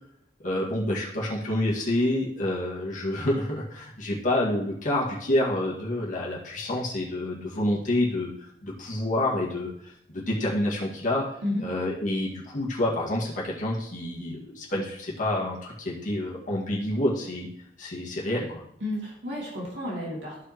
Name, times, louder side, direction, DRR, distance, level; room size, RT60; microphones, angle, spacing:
voice 1, 0.4-17.5 17.8-18.6, left 1 dB, 50° left, -4 dB, 1.9 m, -28 dB
voice 2, 18.8-20.5, left 1 dB, 85° right, -5 dB, 2.6 m, -32 dB
13.5 x 4.9 x 3.0 m, 0.72 s
head